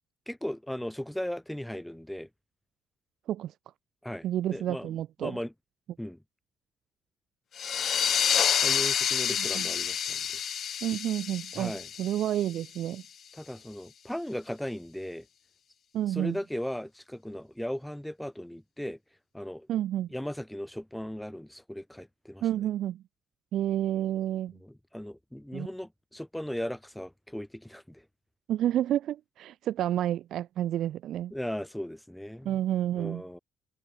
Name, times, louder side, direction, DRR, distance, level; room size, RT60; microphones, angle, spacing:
voice 1, 0.3-2.3 4.0-4.3 4.5-5.5 6.0-6.2 8.6-10.2 11.5-11.9 13.3-15.2 16.1-19.0 19.3-19.7 20.1-22.4 24.6-28.0 31.3-32.6 33.0-33.4, equal, 5° left, 2.8 m, -37 dB
voice 2, 4.2-5.4 9.5-9.7 10.8-11.7 12.0-13.0 15.9-16.4 19.7-20.1 22.4-23.0 23.5-24.5 25.5-25.7 28.5-31.3 32.4-33.2, right 12 dB, 70° right, 0.9 m, -30 dB
sound 1, 7.6-12.9, left 8 dB, 60° left, 1.3 m, -28 dB
supercardioid pair, 65°, 0 cm